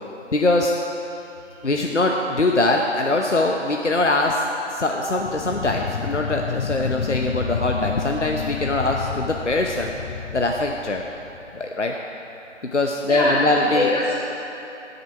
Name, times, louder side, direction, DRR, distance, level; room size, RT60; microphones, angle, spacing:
voice 1, 0.3-0.7 1.6-9.9 10.3-11.0 11.5-11.9 12.6-13.9, left 2 dB, 70° left, 1 dB, 0.9 m, -22 dB
sound 1, 5.2-11.6, left 6 dB, 90° left, 0.5 m, -30 dB
voice 2, 13.0-14.1, left 2 dB, 30° left, -10 dB, 3.0 m, -23 dB
17.5 x 6.8 x 4.6 m, 2.9 s
figure-of-eight pair, 180°, 37 cm